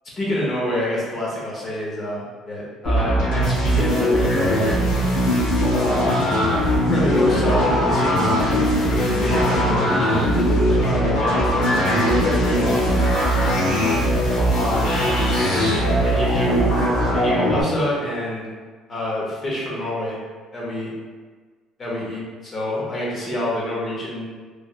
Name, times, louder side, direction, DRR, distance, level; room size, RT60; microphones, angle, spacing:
voice 1, 0.2-4.9 5.7-6.1 6.8-8.7 9.2-10.4 10.8-13.0 14.5-15.0 15.4-16.7 17.1-18.5 18.9-20.2 20.5-20.9 21.8-24.3, equal, 30° left, -6 dB, 1.0 m, -27 dB
sound 1, 2.8-17.6, equal, 85° left, 1.2 m, -20 dB
sound 2, 6.9-15.5, left 3 dB, 50° left, 0.4 m, -33 dB
3.4 x 2.5 x 2.5 m, 1.5 s
cardioid pair, 130°, 0 cm